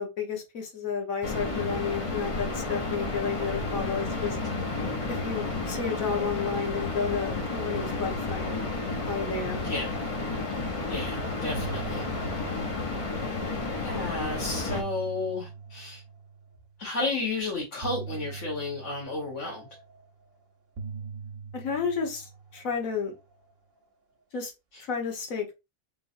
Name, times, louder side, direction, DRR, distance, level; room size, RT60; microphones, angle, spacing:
voice 1, 0.0-4.4 5.1-8.7 9.1-9.6 21.5-23.1 24.3-24.5 24.8-25.5, left 5 dB, 90° left, 1.6 m, -31 dB
sound 1, 1.2-14.8, left 3 dB, 30° left, 0.7 m, -31 dB
voice 2, 10.9-12.1 13.8-16.0 16.8-19.7 24.7-24.8, left 3 dB, 65° left, 1.6 m, -32 dB
sound 2, 11.5-13.7 14.4-16.8 17.8-20.3 20.8-23.3, right 5 dB, 70° right, 1.2 m, -42 dB
4.0 x 3.8 x 2.6 m
omnidirectional pair, 1.4 m